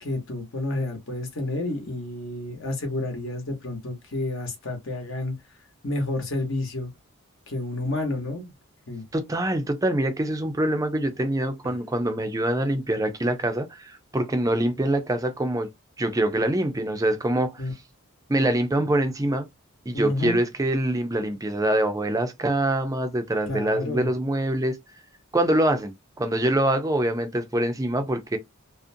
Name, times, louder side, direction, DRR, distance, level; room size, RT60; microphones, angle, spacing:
voice 1, 0.0-5.3 5.8-6.9 7.5-8.5 8.9-9.0 17.6-17.7 19.9-20.4 23.5-24.1, left 2 dB, 65° left, 0.9 m, -30 dB
voice 2, 9.1-15.7 16.0-17.7 18.3-19.5 19.9-24.8 25.3-28.4, right 1 dB, 15° right, 0.4 m, -24 dB
2.5 x 2.1 x 2.6 m
head